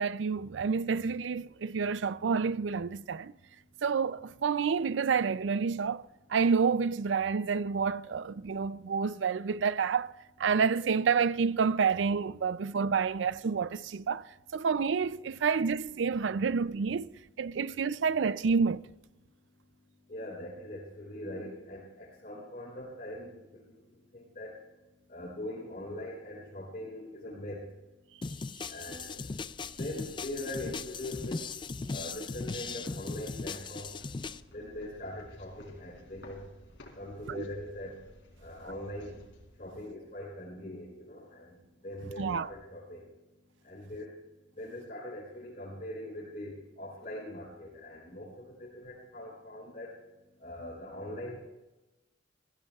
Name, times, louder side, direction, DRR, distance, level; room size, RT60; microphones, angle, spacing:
voice 1, 0.0-3.3 3.8-10.1 10.4-17.1 17.4-18.8 37.3-37.4 42.2-42.5, right 5 dB, 70° right, 0.4 m, -29 dB
voice 2, 20.1-23.3 24.1-24.6 25.1-27.6 28.7-29.1 29.8-31.4 31.9-33.9 34.5-36.4 37.0-38.0 38.4-39.2 39.6-41.5 41.8-43.1 43.6-44.1 44.6-49.9 50.4-51.4, left 1 dB, 45° left, 4.0 m, -41 dB
sound 1, 28.2-34.4, left 4 dB, 25° left, 0.4 m, -38 dB
sound 2, 28.5-40.3, equal, 75° left, 4.0 m, -56 dB
22.0 x 15.5 x 2.4 m
head